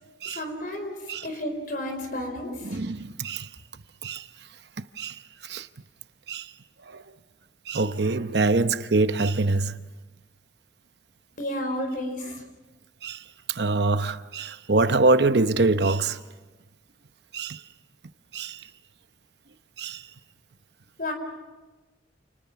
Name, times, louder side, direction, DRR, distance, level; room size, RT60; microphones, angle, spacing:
voice 1, 0.2-2.8 11.4-12.4 21.0-21.1, left 1 dB, 50° left, 4.7 m, -32 dB
voice 2, 2.6-3.5 4.0-4.3 5.0-5.7 6.3-6.5 6.9-7.0 7.7-9.8 13.0-16.2 17.3-17.6 18.3-18.7 19.8-20.1, right 3 dB, 65° right, 0.9 m, -25 dB
29.5 x 29.0 x 5.9 m
head